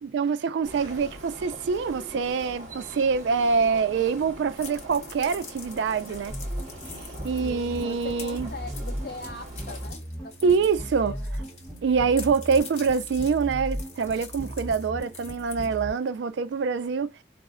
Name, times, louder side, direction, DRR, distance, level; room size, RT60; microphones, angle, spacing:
voice 1, 0.0-6.3 7.2-8.5 10.4-11.2 11.8-17.1, right 5 dB, 75° right, 0.3 m, -25 dB
sound 1, 0.6-9.9, right 1 dB, 40° right, 0.9 m, -43 dB
sound 2, 4.6-11.8 12.1-16.1, left 5 dB, 35° left, 0.9 m, -45 dB
sound 3, 6.3-15.9, equal, ahead, 0.9 m, -37 dB
voice 2, 6.9-11.5, left 2 dB, 50° left, 0.5 m, -42 dB
3.8 x 2.0 x 2.4 m
head